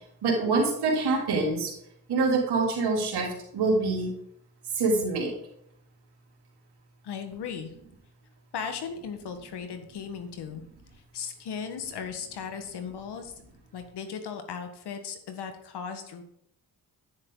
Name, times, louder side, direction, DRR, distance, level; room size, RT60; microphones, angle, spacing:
voice 1, 0.2-1.7 2.1-4.1 4.7-5.3, right 3 dB, 80° right, -1 dB, 3.1 m, -25 dB
voice 2, 7.0-7.7 8.5-10.6 11.1-13.3 13.7-16.2, left 6 dB, 80° left, 7 dB, 1.6 m, -37 dB
10.5 x 9.9 x 3.9 m, 0.74 s
supercardioid pair, 50°, 39 cm